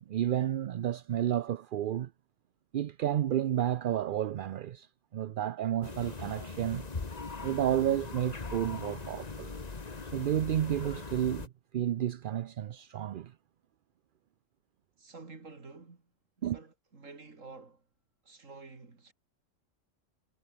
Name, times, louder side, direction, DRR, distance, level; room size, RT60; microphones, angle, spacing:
voice 1, 0.1-2.1 2.7-4.9 5.1-6.9 7.4-9.5 10.1-13.3 16.4-16.6, right 11 dB, 60° right, 0.5 m, -31 dB
sound 1, 5.8-11.5, left 4 dB, 35° left, 1.5 m, -40 dB
voice 2, 15.0-16.1 16.4-17.8 18.2-19.1, right 3 dB, 85° right, 3.3 m, -50 dB
omnidirectional pair, 1.3 m